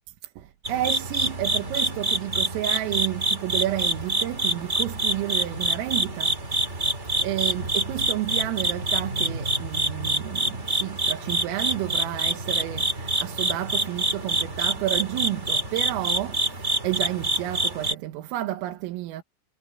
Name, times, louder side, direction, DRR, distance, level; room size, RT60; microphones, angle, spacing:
voice 1, 0.2-6.4 7.2-19.2, right 14 dB, 90° right, 4.1 m, -31 dB
sound 1, 0.6-17.9, right 2 dB, 25° right, 1.4 m, -26 dB
omnidirectional pair, 5.9 m